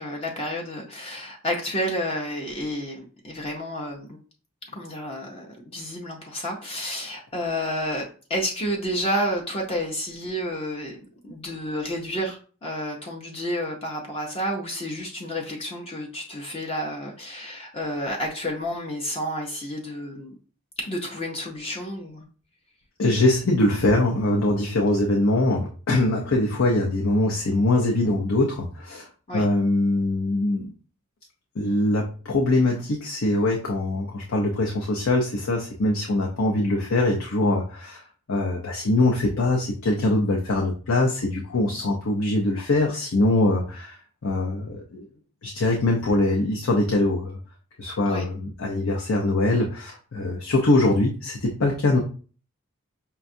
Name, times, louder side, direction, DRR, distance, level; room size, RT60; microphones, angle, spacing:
voice 1, 0.0-4.2 4.6-11.0 11.2-20.4 20.8-22.3 29.3-29.5 48.0-48.3, equal, 25° left, -1 dB, 0.6 m, -30 dB
voice 2, 23.0-30.7 31.6-38.0 38.3-44.0 44.2-45.0 45.4-47.4 47.8-52.0, left 2 dB, 70° left, -1 dB, 0.6 m, -23 dB
5.6 x 2.3 x 2.6 m, 0.38 s
head